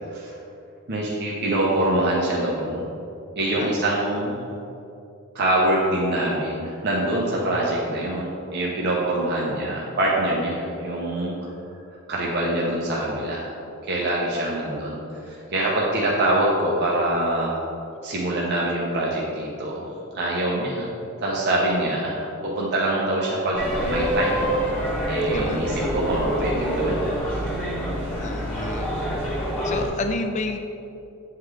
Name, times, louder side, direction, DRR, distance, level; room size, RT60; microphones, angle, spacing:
voice 1, 0.9-2.9 3.4-4.4 5.3-11.3 12.1-13.5 13.8-17.5 18.0-19.9 20.1-20.9 21.2-24.5 25.1-27.0, right 1 dB, 50° right, -4 dB, 0.7 m, -24 dB
voice 2, 3.6-4.2 25.2-25.9 28.2-29.0 29.2-30.6, left 3 dB, 35° left, 6 dB, 0.4 m, -31 dB
sound 1, 23.5-29.9, equal, 5° left, 1.2 m, -26 dB
8.3 x 3.7 x 3.2 m, 2.7 s
head